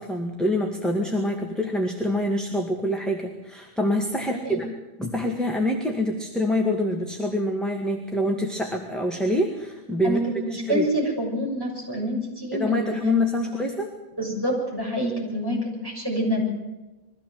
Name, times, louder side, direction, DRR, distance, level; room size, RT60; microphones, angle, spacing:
voice 1, 0.0-4.7 5.0-10.2 10.5-10.8 12.5-13.9, left 1 dB, ahead, 1 dB, 2.1 m, -25 dB
voice 2, 10.0-12.9 13.4-13.6 14.2-16.4, equal, 20° right, -3 dB, 7.0 m, -27 dB
22.5 x 15.5 x 7.8 m, 1.1 s
omnidirectional pair, 1.1 m